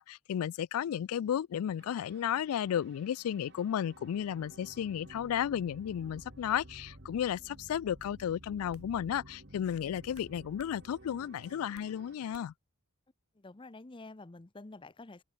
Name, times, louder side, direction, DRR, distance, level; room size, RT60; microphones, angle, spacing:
voice 1, 0.0-12.5, left 9 dB, 80° left, 0.3 m, -33 dB
sound 1, 1.8-12.2, right 1 dB, 50° right, 2.7 m, -54 dB
sound 2, 7.2-7.4 8.0-8.2 8.7-8.9 10.1-10.8 11.1-11.9 12.3-12.7, right 4 dB, 80° right, 7.0 m, -61 dB
voice 2, 13.3-15.2, left 2 dB, 20° left, 0.6 m, -49 dB
head